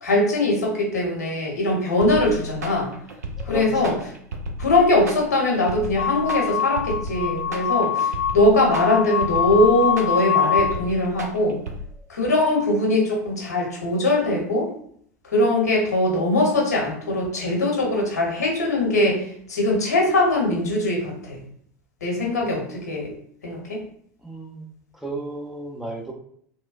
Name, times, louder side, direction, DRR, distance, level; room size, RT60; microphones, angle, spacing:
voice 1, 0.0-2.9 3.5-3.9 4.6-11.6 12.1-14.7 15.3-19.2 19.5-21.4 22.0-23.1 23.4-23.8, left 2 dB, 75° left, -1 dB, 0.8 m, -21 dB
sound 1, 2.0-11.8, equal, 75° right, 0.4 m, -34 dB
voice 2, 3.4-4.0 22.4-22.6 24.2-24.7 25.0-26.1, right 2 dB, 5° right, -2 dB, 0.5 m, -34 dB
sound 2, 6.0-10.8, left 8 dB, 55° left, 0.4 m, -24 dB
2.9 x 2.1 x 2.4 m, 0.64 s
figure-of-eight pair, 80°, 9 cm